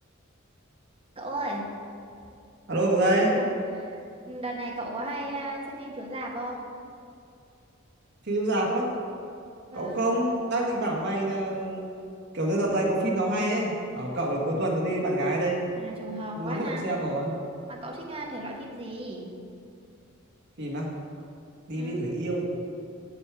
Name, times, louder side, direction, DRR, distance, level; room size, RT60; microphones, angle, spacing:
voice 1, 1.1-1.7 3.3-3.5 3.7-4.0 4.3-6.7 9.7-10.1 15.7-16.9 17.7-19.3 21.7-22.0, right 1 dB, 30° right, -1 dB, 1.1 m, -35 dB
voice 2, 2.7-3.4 8.2-8.9 9.7-11.9 12.3-15.7 16.3-17.3 20.6-20.9 21.7-22.4, right 1 dB, 60° right, -2 dB, 1.5 m, -26 dB
7.2 x 6.7 x 4.8 m, 2.5 s
head